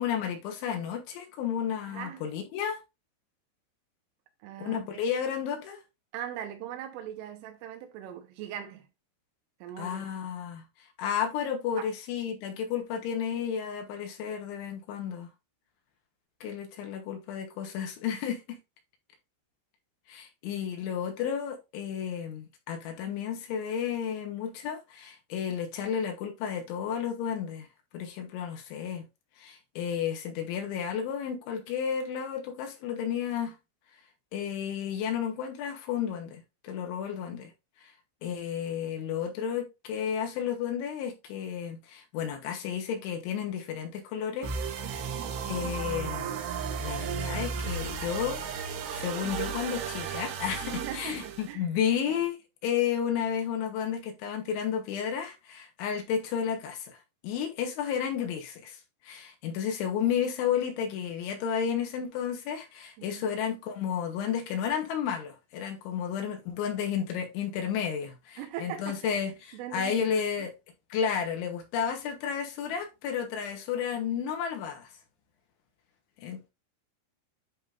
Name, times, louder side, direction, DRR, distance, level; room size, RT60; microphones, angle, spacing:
voice 1, 0.0-2.8 4.6-5.8 9.8-15.3 16.4-18.6 20.1-27.7 27.9-29.1 29.4-33.6 34.3-37.5 37.8-37.9 38.2-44.5 45.4-46.4 46.8-48.4 48.9-57.0 57.2-70.5 70.9-74.9 76.2-76.5, left 8 dB, 75° left, 3.3 m, -32 dB
voice 2, 1.8-2.2 4.4-5.0 6.1-8.9 9.6-10.1 11.8-11.9 45.0-45.4 50.7-51.7 52.1-52.2 63.0-63.2 68.4-69.3 69.5-70.5, right 10 dB, 85° right, 3.5 m, -40 dB
sound 1, 44.4-51.5, right 6 dB, 70° right, 2.9 m, -34 dB
10.5 x 3.7 x 2.5 m
omnidirectional pair, 5.8 m